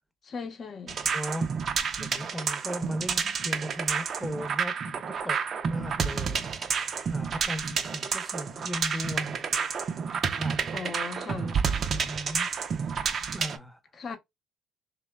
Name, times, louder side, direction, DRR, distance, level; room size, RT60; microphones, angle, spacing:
voice 1, 0.2-1.0 10.7-11.6 13.9-14.2, left 5 dB, 45° left, 0.7 m, -37 dB
sound 1, 0.9-13.6, right 6 dB, 50° right, 0.4 m, -30 dB
voice 2, 1.1-1.5 2.0-5.4 5.6-6.5 7.1-9.4 10.3-10.6 11.9-12.5 13.3-13.8, equal, ahead, 0.7 m, -37 dB
2.8 x 2.1 x 2.2 m
hypercardioid pair, 65°, 0 cm